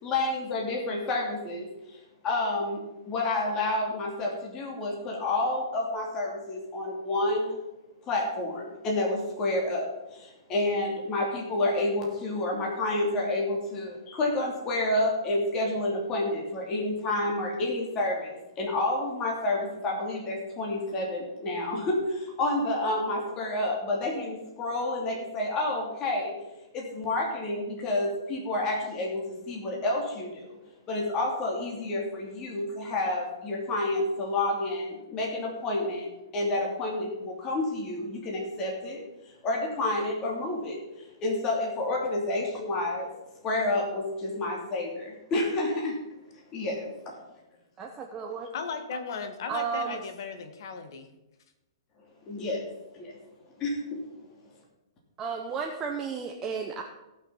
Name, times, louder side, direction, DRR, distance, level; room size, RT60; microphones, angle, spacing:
voice 1, 0.0-2.8 3.1-7.6 8.1-26.3 26.7-30.6 30.9-36.1 36.3-43.1 43.4-46.0 46.5-46.9 52.3-52.7 52.9-53.2 53.6-54.0, left 2 dB, 25° left, -2 dB, 2.8 m, -29 dB
voice 2, 47.8-48.5 49.5-50.0 55.2-56.8, right 6 dB, 20° right, 1 dB, 1.0 m, -33 dB
voice 3, 48.5-51.1, left 5 dB, 55° left, 7 dB, 1.8 m, -36 dB
18.0 x 6.0 x 5.7 m, 0.98 s
hypercardioid pair, 155°, 3 cm